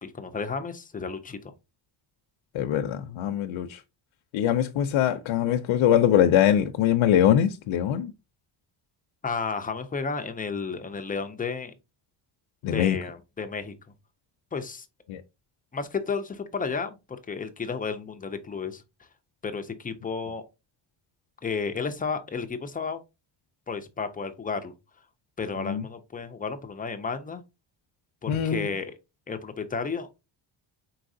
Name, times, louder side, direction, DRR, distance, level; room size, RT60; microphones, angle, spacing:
voice 1, 0.0-1.4 9.2-11.7 12.6-13.8 14.5-14.9 15.7-17.0 17.3-18.8 19.4-20.5 21.4-23.0 23.7-24.7 25.4-27.4 28.2-28.9 29.3-30.1, left 5 dB, 20° left, 0.3 m, -32 dB
voice 2, 2.5-3.8 4.3-8.1 12.6-13.0 15.1-15.2 25.6-25.8 28.3-28.7, left 10 dB, 70° left, 0.6 m, -23 dB
4.8 x 4.0 x 2.6 m
cardioid pair, 175°, 48 cm